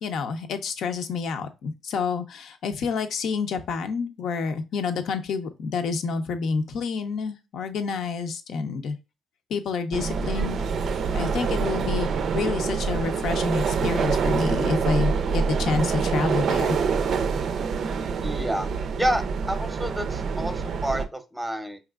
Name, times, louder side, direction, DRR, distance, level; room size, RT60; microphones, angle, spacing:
voice 1, 0.0-9.0 9.5-12.1 12.3-16.8, left 5 dB, 70° left, 0.7 m, -28 dB
sound 1, 9.9-21.1, right 5 dB, 60° right, 0.4 m, -26 dB
voice 2, 18.2-18.7 19.0-21.8, equal, 5° right, 0.7 m, -29 dB
4.7 x 3.1 x 2.4 m
cardioid pair, 90°, 0 cm